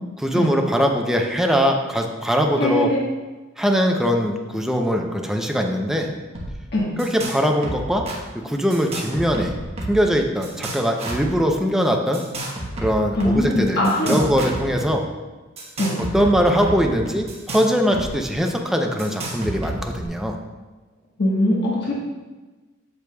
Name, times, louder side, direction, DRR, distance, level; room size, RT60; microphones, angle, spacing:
voice 1, 0.2-2.9 3.6-6.1 7.0-8.1 8.3-9.5 9.9-12.2 12.8-15.1 16.1-20.4, equal, ahead, 2 dB, 0.6 m, -21 dB
voice 2, 2.6-3.0 6.7-6.9 13.1-14.2 15.8-15.9 21.2-21.9, left 1 dB, 55° left, -5 dB, 1.3 m, -21 dB
sound 1, 6.3-6.5 6.8-7.4 7.6-8.2 8.7-10.1 10.4-11.3 12.1-13.4 13.8-14.9 15.6-18.1 18.3-18.4 19.0-20.1, right 1 dB, 30° right, 1.1 m, -31 dB
7.8 x 6.8 x 2.3 m, 1.2 s
head